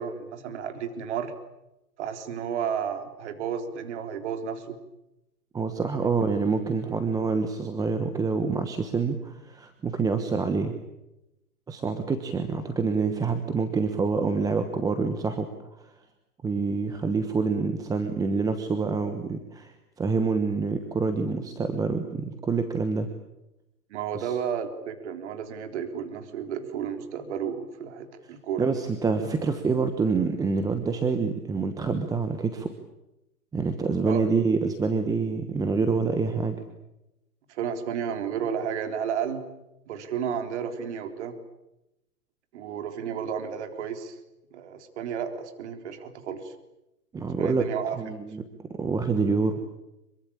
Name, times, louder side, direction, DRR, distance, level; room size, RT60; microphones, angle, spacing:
voice 1, 0.0-1.3 2.0-4.8 6.0-6.3 23.9-28.7 34.1-34.3 37.5-39.4 39.9-41.4 42.5-44.2 44.5-46.5 47.4-48.0, right 7 dB, 45° right, 7 dB, 3.8 m, -32 dB
voice 2, 5.5-10.7 11.7-15.5 16.4-23.1 24.1-24.4 28.6-32.7 33.5-36.5 47.1-47.6 48.0-49.6, right 4 dB, 10° right, 7 dB, 1.2 m, -27 dB
25.5 x 23.5 x 8.8 m, 0.92 s
hypercardioid pair, 135°, 45 cm